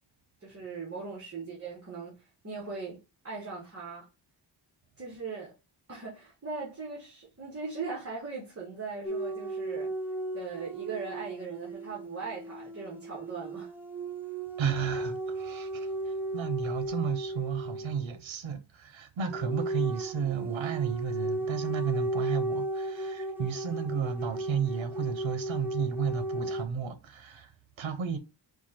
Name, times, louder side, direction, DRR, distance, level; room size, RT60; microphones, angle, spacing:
voice 1, 0.4-3.0 3.2-4.1 5.0-5.5 5.9-9.9 10.3-13.7, right 4 dB, 30° right, 1.3 m, -39 dB
sound 1, 9.0-18.1 19.3-26.6, right 2 dB, 5° right, 0.4 m, -35 dB
voice 2, 14.6-28.2, right 7 dB, 80° right, 0.8 m, -33 dB
4.6 x 2.4 x 4.2 m
wide cardioid pair, 155°, 46 cm